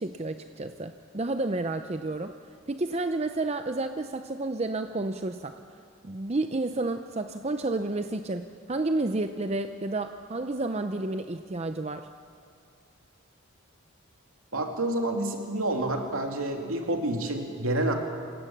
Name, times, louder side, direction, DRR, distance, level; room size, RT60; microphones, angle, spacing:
voice 1, 0.0-2.3 2.7-5.5 6.0-12.1, right 2 dB, 30° right, 8 dB, 0.6 m, -30 dB
voice 2, 14.5-17.9, right 1 dB, 85° right, 3 dB, 2.7 m, -28 dB
27.5 x 17.0 x 7.3 m, 2.3 s
head